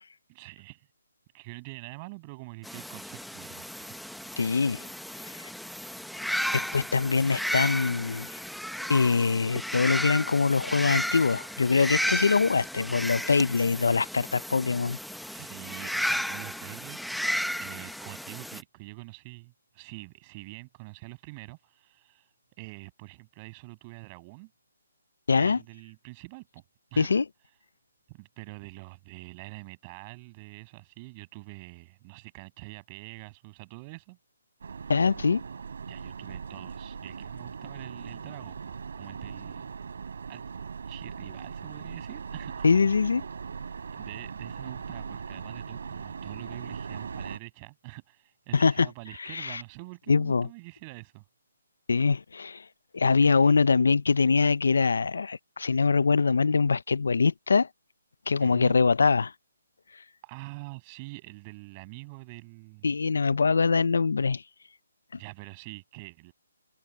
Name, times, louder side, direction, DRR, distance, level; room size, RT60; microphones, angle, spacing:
voice 1, 0.3-0.9 1.3-4.2 15.3-17.1 17.6-22.3 22.6-24.5 25.3-26.6 26.9-27.2 28.1-34.2 35.9-39.7 40.3-40.4 40.9-42.7 43.9-51.2 53.2-53.6 58.4-58.8 60.2-62.9 65.2-66.3, right 27 dB, 20° right, 7.7 m, -45 dB
sound 1, 2.6-18.6, equal, ahead, 0.9 m, -34 dB
voice 2, 4.4-4.9 5.2-5.5 6.5-8.4 8.9-15.0 25.3-25.6 27.0-27.2 34.9-35.4 42.6-43.2 48.5-48.9 49.2-49.6 50.1-50.5 51.9-52.6 52.9-57.7 58.3-59.3 62.8-64.4, left 4 dB, 75° left, 0.5 m, -23 dB
sound 2, 34.6-47.4, right 6 dB, 60° right, 3.2 m, -39 dB
hypercardioid pair, 170°, 0 cm